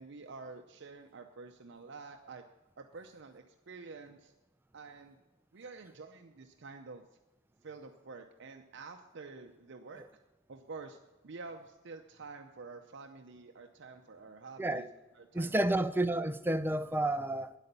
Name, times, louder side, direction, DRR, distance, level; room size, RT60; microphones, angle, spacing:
voice 1, 0.0-2.4 2.8-4.3 4.7-5.2 5.5-7.0 7.6-10.0 10.5-11.0 11.2-14.8 15.1-15.8, right 4 dB, 60° right, 0.6 m, -48 dB
voice 2, 15.3-17.5, right 1 dB, 10° right, 0.5 m, -30 dB
9.8 x 8.3 x 6.7 m
head